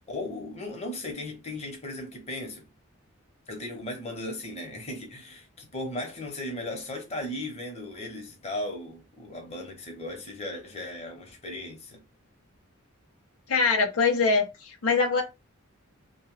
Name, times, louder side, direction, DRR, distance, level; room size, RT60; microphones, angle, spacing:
voice 1, 0.0-2.7 3.5-12.0, left 1 dB, 30° left, 0.9 m, -37 dB
voice 2, 13.5-15.2, left 4 dB, 85° left, 0.6 m, -23 dB
2.7 x 2.2 x 3.2 m
head